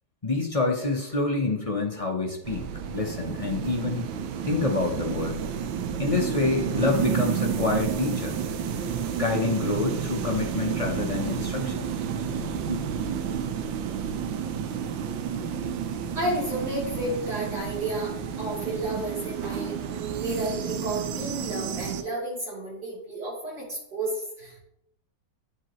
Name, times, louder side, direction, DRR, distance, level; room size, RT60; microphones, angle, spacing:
voice 1, 0.2-2.6 2.9-4.1 4.4-5.4 6.0-8.4 9.2-11.9 12.5-12.8, left 3 dB, 40° left, 0 dB, 0.5 m, -27 dB
sound 1, 2.4-22.0, right 7 dB, 90° right, 1.5 m, -31 dB
voice 2, 16.2-24.6, right 1 dB, 60° right, -5 dB, 3.6 m, -32 dB
9.4 x 7.9 x 3.0 m, 0.80 s
omnidirectional pair, 2.0 m